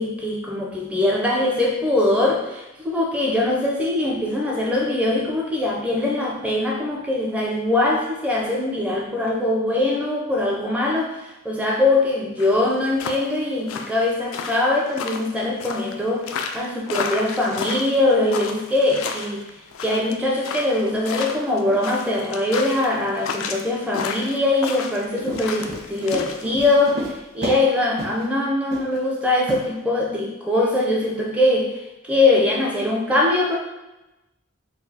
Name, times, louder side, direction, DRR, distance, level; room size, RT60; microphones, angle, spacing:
voice 1, 0.0-19.5 19.8-31.7 32.0-33.6, left 2 dB, 5° right, -3 dB, 0.4 m, -22 dB
sound 1, 12.4-26.4, left 5 dB, 80° left, 0.3 m, -32 dB
Run, 25.1-27.7 28.0-28.2 28.7-29.0 29.5-29.6, equal, 55° right, 1.2 m, -31 dB
3.9 x 2.3 x 2.7 m, 0.98 s
head